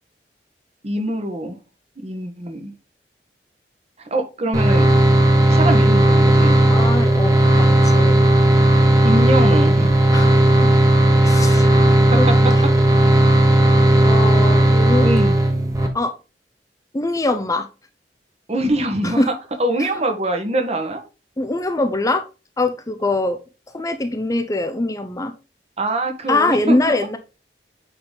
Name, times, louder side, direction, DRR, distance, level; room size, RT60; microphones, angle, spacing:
voice 1, 0.8-1.6 2.0-2.7 4.1-4.9 5.5-6.6 9.0-10.2 11.8-12.2 15.0-15.4 18.5-19.3 19.6-21.0 25.8-27.0, right 1 dB, 40° right, 5 dB, 1.4 m, -24 dB
sound 1, 4.5-15.9, right 1 dB, 20° right, 1.4 m, -14 dB
voice 2, 6.6-8.2 10.1-10.3 10.6-10.7 11.2-12.6 14.0-15.1 15.9-16.1 16.9-17.7 19.0-19.3 21.4-22.3 22.6-23.4 23.7-25.3 26.3-27.2, left 2 dB, 20° left, 8 dB, 0.6 m, -23 dB
8.7 x 4.0 x 3.9 m, 0.31 s
head